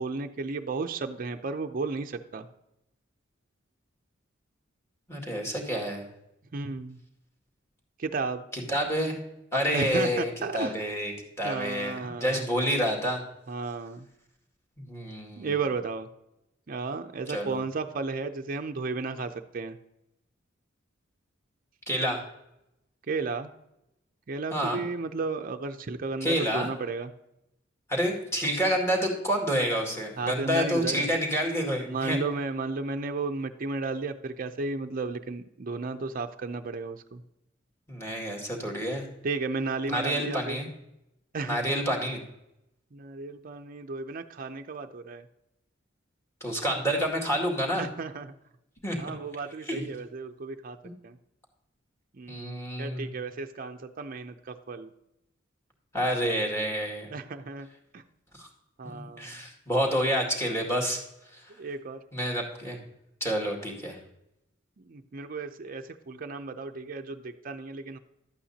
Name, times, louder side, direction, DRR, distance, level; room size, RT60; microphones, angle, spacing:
voice 1, 0.0-2.5 6.5-7.0 8.0-8.4 9.7-10.8 11.4-12.4 13.5-14.1 15.4-16.1 16.7-19.8 23.1-23.5 24.3-27.1 30.2-31.1 31.9-37.2 39.2-40.6 41.3-41.7 42.9-45.3 47.8-48.3 49.0-50.8 51.0-51.2 52.1-54.9 57.1-57.7 57.9-58.0 58.8-59.3 61.6-62.0 64.8-68.0, right 3 dB, 45° right, 6 dB, 0.5 m, -33 dB
voice 2, 5.1-6.0 8.7-9.2 9.5-13.2 14.9-15.5 17.3-17.6 21.9-22.2 24.5-24.8 26.2-26.7 27.9-32.2 37.9-39.1 39.9-40.7 41.4-42.2 46.4-47.8 48.8-49.0 49.7-49.9 50.8-50.9 52.3-53.1 55.9-57.1 58.4-58.5 58.8-61.0 61.3-61.4 62.1-62.8 63.2-64.0, equal, 15° left, 0 dB, 2.1 m, -28 dB
12.0 x 8.7 x 2.8 m, 0.85 s
head